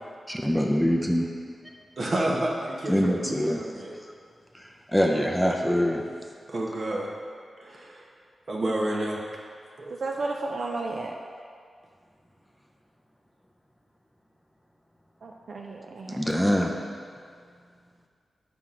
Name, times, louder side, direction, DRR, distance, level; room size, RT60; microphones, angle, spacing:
voice 1, 0.3-1.3 2.9-3.6 4.9-6.0 16.1-16.7, equal, ahead, 1 dB, 0.5 m, -24 dB
voice 2, 2.0-3.9 5.1-5.2 6.5-7.1 7.6-8.1 8.5-9.3 9.8-9.9, right 1 dB, 45° right, -2 dB, 1.1 m, -30 dB
voice 3, 9.9-11.1 15.2-16.4, right 3 dB, 60° right, 1 dB, 0.4 m, -33 dB
7.4 x 5.9 x 3.8 m, 2.1 s
wide cardioid pair, 115°, 0 cm